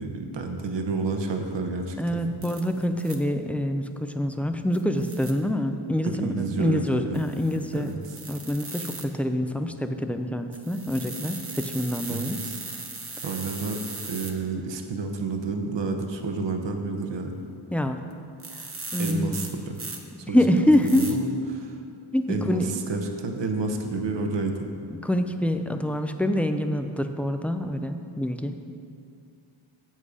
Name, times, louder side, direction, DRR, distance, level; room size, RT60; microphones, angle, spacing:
voice 1, 0.0-2.0 6.2-7.2 7.7-7.9 12.1-12.6 13.2-13.8 14.1-17.4 19.0-19.8 20.3-21.7 22.3-24.6, right 3 dB, 60° right, 4 dB, 0.9 m, -30 dB
voice 2, 2.0-7.9 8.3-12.4 17.7-18.0 18.9-19.4 20.3-21.2 22.1-22.7 25.0-28.7, left 1 dB, 5° left, 7 dB, 0.3 m, -26 dB
sound 1, 2.4-3.1 4.7-5.3 7.1-9.0 10.5-14.3 18.1-18.2 18.4-20.0 20.7-21.1, right 3 dB, 25° right, 0.9 m, -38 dB
8.0 x 7.5 x 4.9 m, 2.4 s
wide cardioid pair, 100°, 49 cm